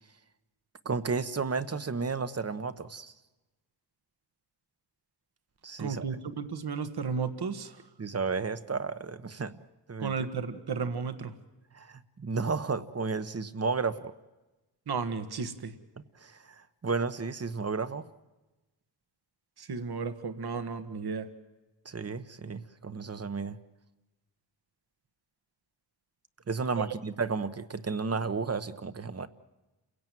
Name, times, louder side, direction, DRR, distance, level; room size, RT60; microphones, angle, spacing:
voice 1, 0.8-3.1 5.6-6.0 8.0-9.5 9.9-10.1 11.7-14.1 16.2-18.0 21.8-23.6 26.5-29.3, right 4 dB, 35° right, 13 dB, 1.0 m, -32 dB
voice 2, 5.8-7.8 10.0-11.3 14.9-15.7 19.6-21.3 26.8-26.9, right 5 dB, 60° right, 11 dB, 1.6 m, -34 dB
30.0 x 17.0 x 9.2 m, 1.1 s
wide cardioid pair, 175°, 43 cm